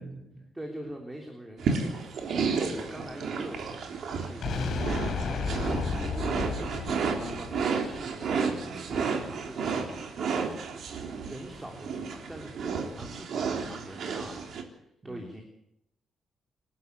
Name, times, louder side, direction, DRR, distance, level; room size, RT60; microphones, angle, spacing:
voice 1, 0.0-0.5 7.1-7.5 8.7-9.0 15.0-15.3, right 1 dB, 25° right, 4 dB, 6.3 m, -45 dB
voice 2, 0.5-2.2 2.4-6.5 6.9-9.8 11.2-14.8 15.0-15.4, right 1 dB, 10° right, 2 dB, 3.4 m, -44 dB
sound 1, 1.6-14.6, right 5 dB, 60° right, 3.6 m, -32 dB
sound 2, 4.4-8.4, left 4 dB, 60° left, 6.6 m, -33 dB
28.5 x 12.0 x 8.1 m, 0.78 s
cardioid pair, 140°, 0 cm